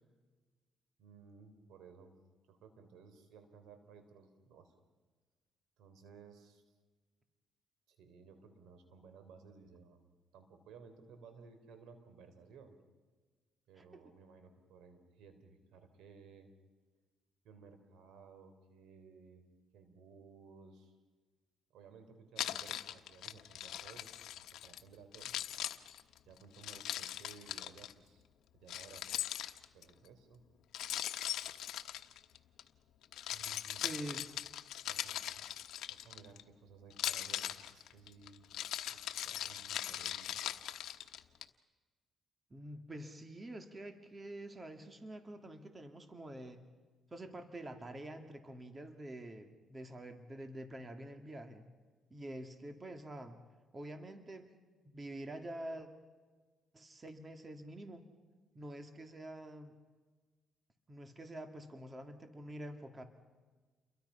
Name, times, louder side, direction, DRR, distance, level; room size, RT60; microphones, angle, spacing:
voice 1, 1.0-2.1 2.5-4.7 5.8-6.7 7.9-10.0 10.3-12.8 13.7-16.5 17.4-19.4 19.7-20.9 21.7-25.4 26.3-28.2 28.5-29.1 29.7-30.4 33.3-33.8 34.9-35.5 35.9-38.5 38.9-40.4, right 5 dB, 85° right, 8 dB, 3.6 m, -58 dB
Keys jangling, 22.4-24.8 25.1-27.9 28.7-29.9 30.7-32.6 33.0-36.4 36.9-41.4, left 12 dB, 80° left, 1.1 m, -40 dB
voice 2, 33.8-34.4 42.5-46.6 47.1-51.7 52.1-53.4 53.7-54.5 54.8-55.9 56.7-58.0 58.5-59.7 60.9-63.0, right 1 dB, 25° right, 6 dB, 2.3 m, -47 dB
29.5 x 22.5 x 5.7 m, 1.4 s
cardioid pair, 90°, 0 cm